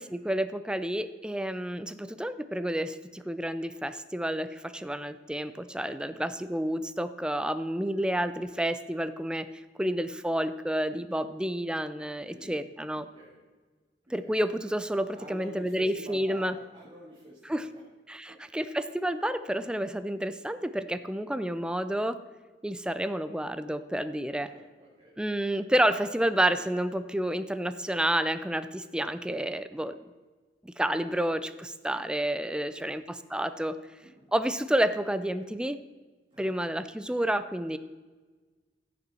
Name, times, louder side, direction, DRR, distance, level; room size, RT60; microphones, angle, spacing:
voice 1, 0.0-9.5 9.8-13.1 14.1-16.6 17.4-17.7 18.1-22.2 22.6-24.5 25.2-30.0 30.6-33.8 34.3-35.8 36.4-37.8, right 1 dB, 5° right, 12 dB, 0.4 m, -30 dB
voice 2, 12.2-12.6 13.1-13.4 14.2-14.4 15.1-17.8 18.3-18.4 24.3-25.1 31.9-32.1 32.4-32.9 34.0-34.3 36.3-36.7, right 1 dB, 30° right, -5 dB, 2.1 m, -48 dB
14.5 x 6.8 x 4.3 m, 1.3 s
head